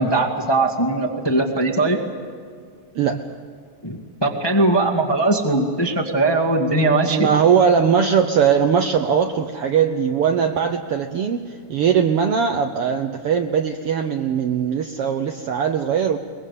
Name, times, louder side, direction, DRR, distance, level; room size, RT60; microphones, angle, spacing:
voice 1, 0.0-2.0 3.8-7.3, right 2 dB, 10° left, 0 dB, 1.3 m, -20 dB
voice 2, 2.9-3.3 7.0-16.2, right 7 dB, 65° right, 6 dB, 1.5 m, -20 dB
23.0 x 21.5 x 8.4 m, 2.1 s
omnidirectional pair, 3.5 m